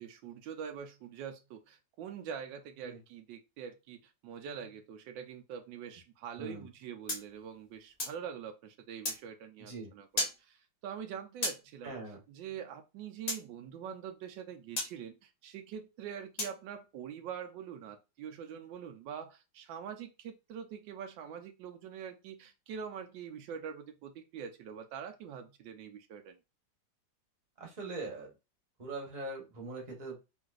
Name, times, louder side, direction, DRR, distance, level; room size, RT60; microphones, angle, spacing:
voice 1, 0.0-12.0 12.3-26.3, right 8 dB, 85° right, 6 dB, 1.3 m, -44 dB
sound 1, 7.1-8.2 9.0-9.2 10.2-10.4 11.4-11.6 13.3-13.4 14.8-14.9 16.4-16.6, left 1 dB, 60° left, 0.4 m, -34 dB
voice 2, 11.8-12.2 27.6-28.3 28.8-30.1, right 3 dB, 30° right, -1 dB, 1.0 m, -41 dB
3.8 x 2.6 x 2.4 m, 0.27 s
omnidirectional pair, 2.0 m